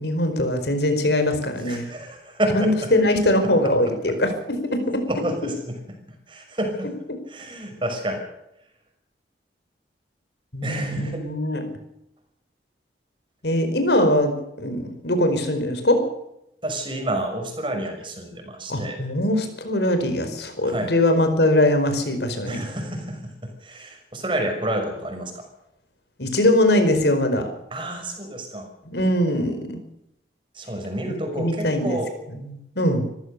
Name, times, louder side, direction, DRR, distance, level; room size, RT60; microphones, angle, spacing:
voice 1, 0.0-1.9 2.5-5.1 10.5-11.6 13.4-16.1 18.7-22.6 26.2-27.5 28.8-29.8 31.4-32.0 32.4-33.1, left 1 dB, 75° left, 7 dB, 4.9 m, -22 dB
voice 2, 1.7-2.9 5.1-5.8 6.3-6.9 7.3-8.2 10.6-11.2 16.6-19.0 20.6-20.9 22.4-25.5 27.7-28.7 30.5-32.1, right 1 dB, 30° right, 4 dB, 6.0 m, -29 dB
25.0 x 15.0 x 6.8 m, 0.82 s
head